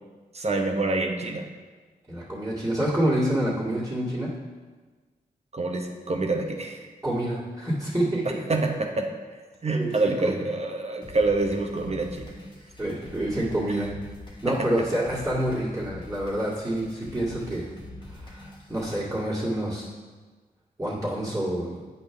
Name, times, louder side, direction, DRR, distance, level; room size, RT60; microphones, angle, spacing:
voice 1, 0.3-1.4 5.5-6.9 8.5-9.1 9.6-12.3 13.7-13.8 14.5-14.6, right 3 dB, 40° right, 3 dB, 1.0 m, -26 dB
voice 2, 2.1-4.3 7.0-8.4 9.7-10.4 12.8-13.9 14.4-17.7 18.1-19.9 20.8-21.9, right 1 dB, 15° right, -11 dB, 2.0 m, -27 dB
sound 1, 11.0-19.0, left 2 dB, 30° left, 1.7 m, -44 dB
8.3 x 5.4 x 3.4 m, 1.4 s
cardioid pair, 50°, 16 cm